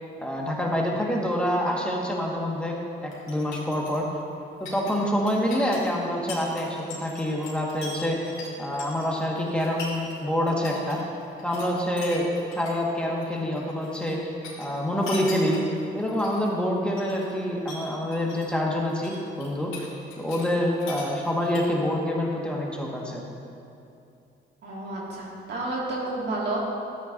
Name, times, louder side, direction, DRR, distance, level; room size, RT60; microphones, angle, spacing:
voice 1, 0.2-4.1 4.6-8.2 8.6-11.0 11.4-12.3 12.6-19.9 20.2-23.2, equal, 5° left, -3 dB, 1.7 m, -27 dB
sound 1, 3.1-10.2 10.5-10.9 11.2-12.7 13.0-14.1 14.4-16.5 16.9-17.3 17.7-18.5 18.8-20.5 20.8-22.0, left 3 dB, 90° left, 2.4 m, -41 dB
voice 2, 24.6-26.7, right 2 dB, 60° right, -4 dB, 2.3 m, -30 dB
12.5 x 9.2 x 2.7 m, 2.7 s
cardioid pair, 90°, 20 cm